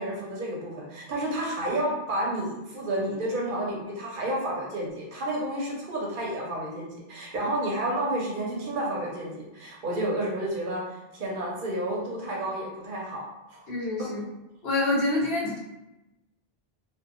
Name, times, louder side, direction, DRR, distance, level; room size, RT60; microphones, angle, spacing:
voice 1, 0.0-13.2 13.5-13.7, right 1 dB, 60° right, -3 dB, 0.7 m, -30 dB
voice 2, 13.7-14.2 14.6-15.6, left 2 dB, 70° left, -3 dB, 0.9 m, -26 dB
2.7 x 2.1 x 2.4 m, 0.95 s
omnidirectional pair, 1.1 m